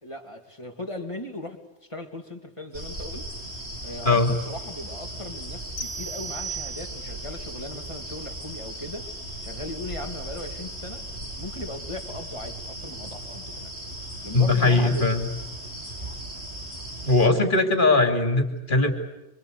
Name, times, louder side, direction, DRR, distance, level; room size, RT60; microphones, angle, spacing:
voice 1, 0.0-1.6 1.9-3.3 3.8-9.1 9.4-11.0 11.4-13.7 14.2-15.2, left 1 dB, 30° left, 5 dB, 2.6 m, -38 dB
sound 1, 2.7-17.3, right 1 dB, 75° right, 5.4 m, -37 dB
sound 2, 5.8-7.3, right 5 dB, 85° left, 2.2 m, -36 dB
voice 2, 14.3-15.3 17.0-18.9, left 3 dB, 50° left, 5 dB, 3.3 m, -20 dB
27.0 x 26.0 x 8.3 m, 0.91 s
omnidirectional pair, 1.1 m